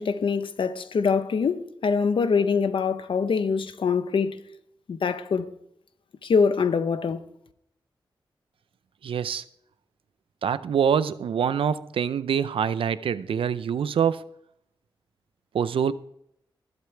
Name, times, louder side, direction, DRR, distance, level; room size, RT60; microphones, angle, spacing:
voice 1, 0.0-4.4 4.9-5.5 6.2-7.2, left 5 dB, 75° left, 0.9 m, -24 dB
voice 2, 9.0-9.4 10.4-14.3 15.5-15.9, right 7 dB, 90° right, 0.5 m, -25 dB
20.0 x 8.1 x 3.4 m
wide cardioid pair, 85°, 9 cm